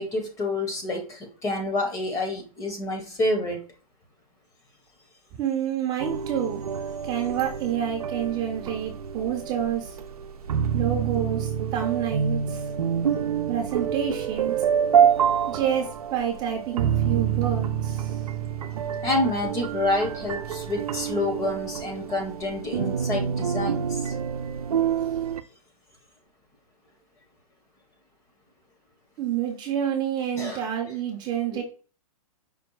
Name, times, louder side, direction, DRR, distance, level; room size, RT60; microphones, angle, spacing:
voice 1, 0.0-3.6 19.0-24.1 30.3-30.6 31.5-31.6, left 2 dB, 15° left, 4 dB, 1.0 m, -28 dB
voice 2, 5.4-6.6 7.0-10.0 10.7-12.7 13.5-14.5 15.5-18.2 29.2-31.6, right 9 dB, 25° right, 2 dB, 0.7 m, -28 dB
sound 1, 6.0-25.4, right 8 dB, 90° right, 0.5 m, -27 dB
5.2 x 2.1 x 4.6 m, 0.37 s
hypercardioid pair, 145°, 19 cm